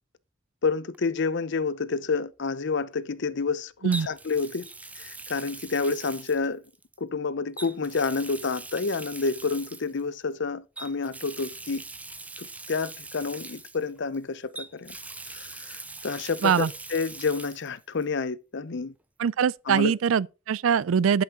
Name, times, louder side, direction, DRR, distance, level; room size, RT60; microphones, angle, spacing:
voice 1, 0.6-4.7 5.0-6.6 7.0-11.8 12.4-14.9 15.3-18.9 19.7-19.9, left 4 dB, 60° left, 0.7 m, -29 dB
Water tap faucet, 0.9-1.2 3.9-7.0 7.5-10.0 10.8-14.2 14.5-17.7 18.0-18.1 19.7-19.8, right 3 dB, 5° right, 0.4 m, -42 dB
voice 2, 19.2-21.2, right 7 dB, 80° right, 0.4 m, -23 dB
11.5 x 5.9 x 4.1 m
head